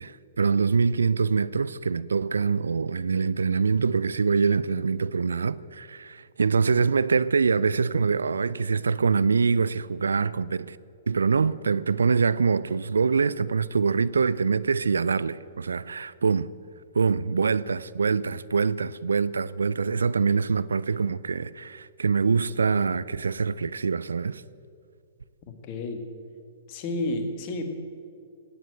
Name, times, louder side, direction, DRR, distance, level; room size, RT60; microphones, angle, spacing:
voice 1, 0.0-10.8 11.1-16.5 16.9-24.4, right 5 dB, 75° right, 0.4 m, -24 dB
voice 2, 25.4-26.1 26.7-27.7, left 2 dB, 40° left, 2.0 m, -31 dB
17.5 x 9.0 x 8.0 m
figure-of-eight pair, 115°, 0 cm